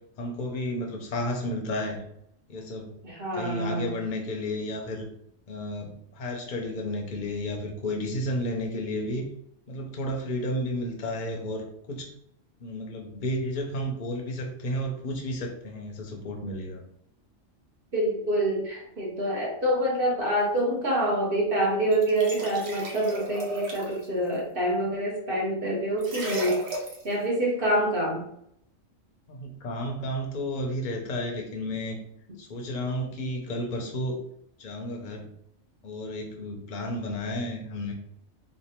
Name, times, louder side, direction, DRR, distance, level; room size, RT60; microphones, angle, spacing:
voice 1, 0.2-2.0 2.5-3.0 3.3-5.1 5.5-9.2 9.7-12.1 12.6-16.8 29.3-32.0 32.4-34.2 34.6-35.3 35.8-37.9, left 1 dB, 45° left, 1 dB, 0.8 m, -32 dB
voice 2, 3.0-4.0 17.9-26.6 27.0-28.2, right 1 dB, 45° right, -4 dB, 1.3 m, -26 dB
sound 1, 21.9-24.0 26.0-27.1, right 1 dB, 80° right, 1.3 m, -35 dB
3.3 x 2.4 x 4.3 m, 0.73 s
omnidirectional pair, 1.4 m